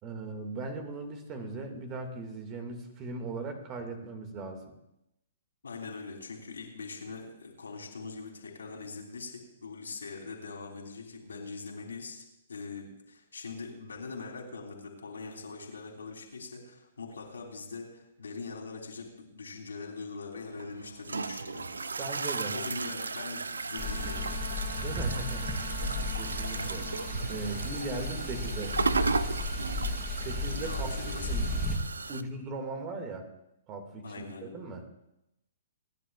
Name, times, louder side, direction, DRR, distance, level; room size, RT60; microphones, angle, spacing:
voice 1, 0.0-4.6 22.0-22.6 24.8-25.5 25.8-28.8 30.2-31.5 32.1-33.3 33.7-34.8, right 3 dB, 30° right, 6 dB, 2.1 m, -38 dB
voice 2, 5.6-21.7 22.4-24.4 30.6-31.7 34.0-34.7, left 4 dB, 75° left, 1 dB, 3.2 m, -42 dB
sound 1, 20.5-32.2, right 4 dB, 75° right, 0.6 m, -35 dB
Wind instrument woodwind instrument, 23.7-27.4, left 14 dB, 40° left, 2.6 m, -47 dB
sound 2, 23.8-31.8, left 1 dB, ahead, 3.2 m, -34 dB
27.5 x 10.5 x 2.4 m, 0.85 s
figure-of-eight pair, 120°, 0 cm